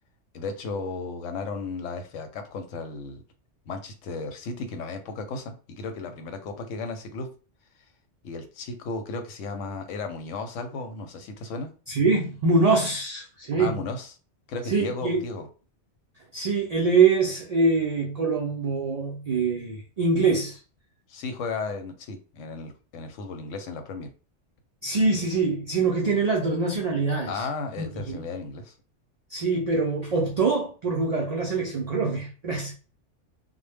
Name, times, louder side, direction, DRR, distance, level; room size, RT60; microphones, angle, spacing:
voice 1, 0.3-3.2 3.7-7.3 8.2-11.7 13.6-14.1 14.5-15.5 21.1-24.1 27.3-28.7, left 3 dB, 90° left, 0.9 m, -34 dB
voice 2, 11.9-13.8 14.7-15.2 16.3-20.6 24.8-27.5 27.8-28.2 29.3-32.8, right 4 dB, 90° right, 0.3 m, -24 dB
2.1 x 2.0 x 3.2 m
omnidirectional pair, 1.2 m